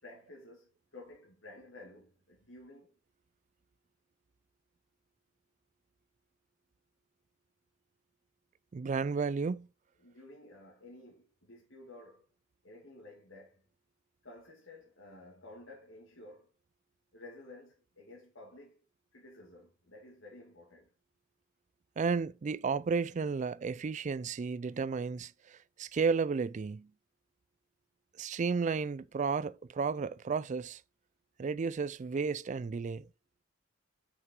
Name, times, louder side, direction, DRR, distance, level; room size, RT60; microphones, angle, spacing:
voice 1, 0.0-2.9 10.0-12.3 12.6-13.7 14.2-16.5 17.1-18.8 19.1-20.9, left 2 dB, 80° left, 2.4 m, -53 dB
voice 2, 8.7-9.7 22.0-26.9 28.2-30.8 31.4-33.1, right 5 dB, 40° right, 0.3 m, -33 dB
6.2 x 5.9 x 4.4 m
head